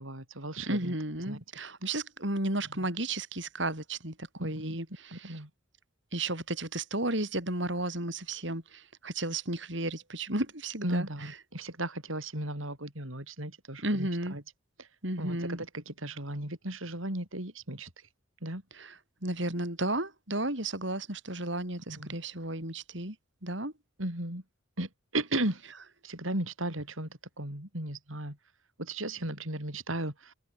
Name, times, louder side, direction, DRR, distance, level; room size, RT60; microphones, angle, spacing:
voice 1, 0.0-1.4 4.4-4.8 5.1-5.5 10.8-14.4 14.8-14.9 15.2-18.1 18.4-18.6 21.9-22.2 24.0-24.4 24.8-25.6 26.0-28.4 28.8-30.3, right 1 dB, 75° right, 7.0 m, -36 dB
voice 2, 0.7-5.4 6.1-11.1 13.8-14.4 15.0-15.6 18.8-18.9 19.2-23.2 23.4-23.7, right 2 dB, 60° right, 7.6 m, -33 dB
head